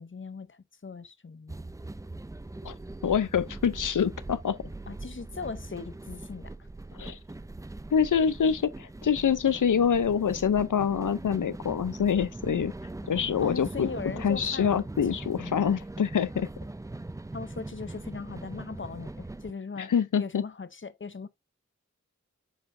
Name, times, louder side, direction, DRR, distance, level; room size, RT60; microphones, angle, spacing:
voice 1, 0.0-1.6 4.9-6.5 13.4-14.8 15.4-15.7 17.3-21.3, left 5 dB, 40° left, 0.7 m, -39 dB
sound 1, 1.5-19.5, right 2 dB, 10° right, 0.4 m, -41 dB
voice 2, 3.0-4.6 6.9-7.2 7.9-12.7 13.1-13.9 14.2-16.5 19.8-20.4, left 7 dB, 90° left, 0.6 m, -26 dB
7.2 x 5.3 x 2.6 m
wide cardioid pair, 60°, 30 cm